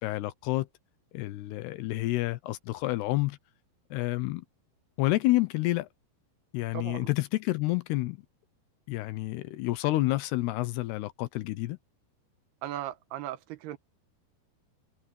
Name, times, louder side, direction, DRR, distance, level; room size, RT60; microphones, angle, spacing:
voice 1, 0.0-0.7 1.1-3.4 3.9-4.5 5.0-5.9 6.5-8.2 8.9-11.8, left 18 dB, 80° left, 2.7 m, -29 dB
voice 2, 6.7-7.1 12.6-13.8, right 13 dB, 75° right, 2.8 m, -37 dB
omnidirectional pair, 5.0 m